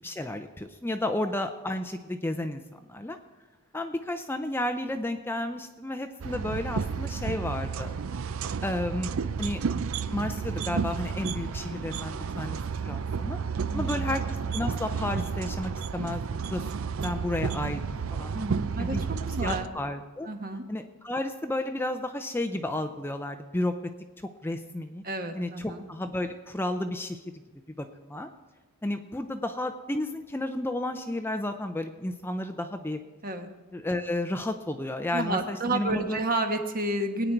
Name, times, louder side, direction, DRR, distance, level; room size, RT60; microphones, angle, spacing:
voice 1, 0.0-3.2 3.7-8.0 8.6-9.1 9.4-9.6 10.1-12.6 12.8-13.4 13.7-14.2 14.5-16.6 17.0-18.3 18.7-19.0 19.4-20.3 20.7-23.7 24.4-25.0 25.3-27.2 27.8-28.3 28.8-33.0 33.7-36.2, left 1 dB, 10° left, 6 dB, 0.5 m, -32 dB
sound 1, 6.2-19.7, right 5 dB, 65° right, 0.5 m, -32 dB
voice 2, 13.7-14.2 18.3-19.0 19.3-19.7 20.3-20.6 25.0-25.8 33.2-33.5 35.1-37.3, right 2 dB, 40° right, 5 dB, 1.3 m, -30 dB
20.5 x 9.2 x 4.5 m, 1.2 s
head